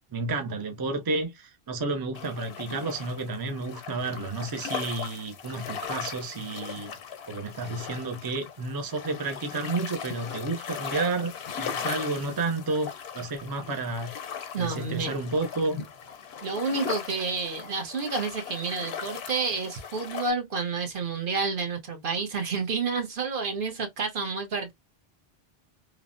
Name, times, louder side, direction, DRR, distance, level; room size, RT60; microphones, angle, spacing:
voice 1, 0.1-6.9 7.3-11.3 11.6-14.1 14.6-15.8, right 3 dB, 35° right, 0.4 m, -31 dB
sound 1, 2.1-20.3, left 7 dB, 90° left, 0.8 m, -38 dB
voice 2, 14.5-15.2 16.4-24.7, right 4 dB, 60° right, 0.9 m, -30 dB
3.2 x 2.0 x 2.5 m
omnidirectional pair, 1.0 m